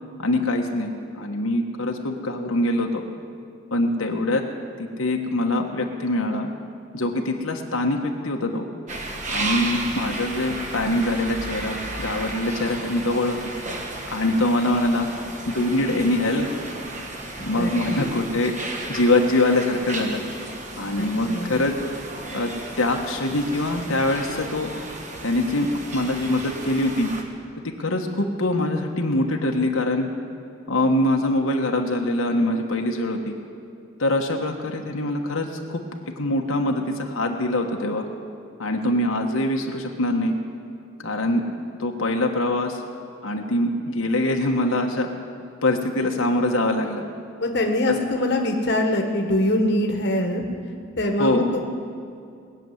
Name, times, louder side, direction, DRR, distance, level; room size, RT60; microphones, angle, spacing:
voice 1, 0.2-3.0 3.7-4.4 4.8-6.5 6.9-8.6 9.3-13.4 14.1-15.1 15.5-16.5 17.4-18.5 18.9-20.2 20.8-21.7 22.3-22.5 22.8-24.7 25.2-25.7 25.9-27.1 27.6-30.1 30.7-33.3 34.0-35.8 36.2-38.0 38.6-40.3 41.0-41.4 41.8-42.8 43.2-45.1 45.6-47.0 47.9-48.0 51.2-51.5, left 1 dB, 85° left, 2 dB, 1.3 m, -23 dB
sound 1, 8.9-27.2, right 2 dB, 35° right, 1.3 m, -34 dB
voice 2, 17.6-18.1 21.0-21.5 47.4-50.4 51.0-51.6, left 1 dB, 50° left, 2 dB, 1.4 m, -23 dB
20.0 x 7.0 x 9.3 m, 2.4 s
head